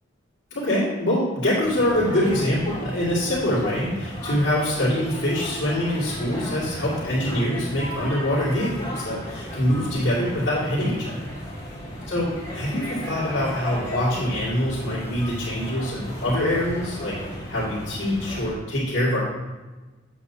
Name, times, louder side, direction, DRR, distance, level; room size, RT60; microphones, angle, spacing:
voice 1, 0.5-11.3 12.1-19.2, left 1 dB, 65° left, -11 dB, 2.5 m, -24 dB
sound 1, 1.6-18.5, equal, 20° left, 2.2 m, -35 dB
8.2 x 8.1 x 2.8 m, 1.2 s
head